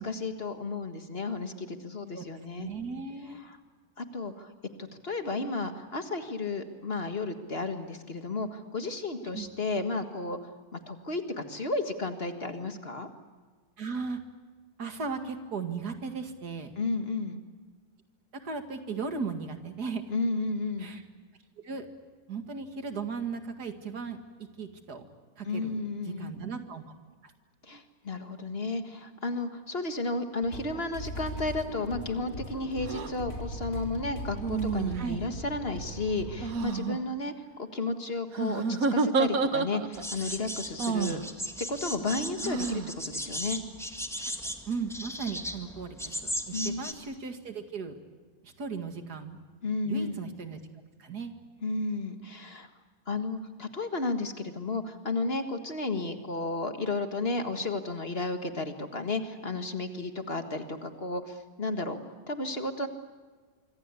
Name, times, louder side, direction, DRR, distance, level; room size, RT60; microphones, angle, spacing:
voice 1, 0.0-2.7 3.4-3.6 4.0-4.5 4.8-10.4 10.7-13.1 16.8-17.4 20.1-20.9 25.4-26.3 27.6-37.3 37.6-41.2 41.6-43.6 46.5-46.8 49.6-50.2 51.6-52.7 53.1-62.0 62.3-62.9, left 3 dB, 40° left, 7 dB, 1.9 m, -33 dB
voice 2, 2.6-3.4 9.3-9.5 13.8-14.2 14.8-16.8 18.3-20.0 20.8-21.0 21.6-21.9 22.3-24.2 24.6-25.0 25.4-25.8 26.0-26.8 27.2-27.3 34.9-35.2 44.7-48.0 48.4-49.4 49.8-50.6 51.0-51.3, right 5 dB, 80° right, 7 dB, 2.6 m, -36 dB
sound 1, 30.4-36.5, equal, 55° left, 4.7 m, -39 dB
sound 2, 32.9-33.1 34.4-35.3 36.4-37.0 38.3-40.1 40.8-41.2 42.4-42.9, right 4 dB, 65° right, 1.7 m, -29 dB
sound 3, 39.9-46.9, equal, ahead, 1.8 m, -37 dB
25.5 x 25.0 x 8.4 m, 1.4 s
omnidirectional pair, 1.7 m